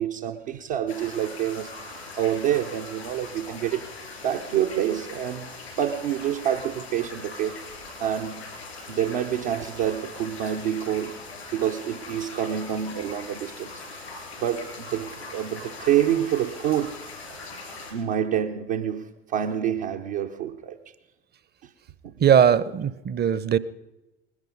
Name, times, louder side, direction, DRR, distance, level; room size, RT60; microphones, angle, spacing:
voice 1, 0.0-1.7 2.2-3.9 4.2-7.7 8.0-8.5 8.9-11.2 11.5-14.1 14.4-17.0 17.3-17.4 17.9-20.8 22.0-22.1, right 10 dB, 65° right, 1.0 m, -27 dB
sound 1, 0.9-17.9, left 3 dB, 85° left, 3.9 m, -41 dB
voice 2, 22.2-23.6, right 8 dB, 30° right, 0.8 m, -19 dB
20.0 x 11.5 x 5.5 m
figure-of-eight pair, 60°, 31 cm